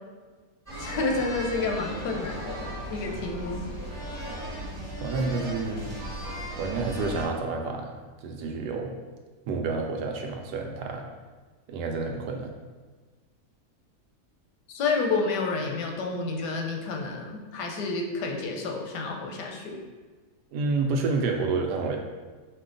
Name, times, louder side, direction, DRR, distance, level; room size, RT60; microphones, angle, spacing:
sound 1, 0.7-7.3, right 1 dB, 15° right, 0.9 m, -36 dB
voice 1, 0.8-3.6 14.7-19.8, left 3 dB, 85° left, 1 dB, 1.3 m, -30 dB
voice 2, 5.0-5.9 6.2-7.9 8.2-9.0 9.5-11.0 11.7-12.5 20.5-22.0, right 3 dB, 90° right, 2 dB, 1.2 m, -29 dB
5.0 x 2.3 x 3.7 m, 1.4 s
omnidirectional pair, 1.7 m